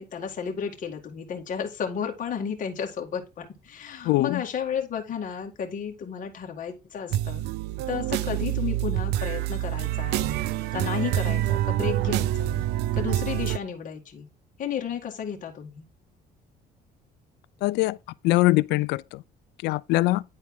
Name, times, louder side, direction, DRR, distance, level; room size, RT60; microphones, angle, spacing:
voice 1, 0.0-7.4 7.9-10.4 10.7-12.7 12.9-14.3 14.6-15.9, left 7 dB, 50° left, 1.9 m, -33 dB
voice 2, 4.0-4.4 17.6-18.0 18.2-19.2 19.6-20.2, left 19 dB, 85° left, 0.4 m, -22 dB
sound 1, 7.1-13.6, right 14 dB, 80° right, 0.5 m, -26 dB
9.8 x 4.1 x 3.6 m
cardioid pair, 110°, 17 cm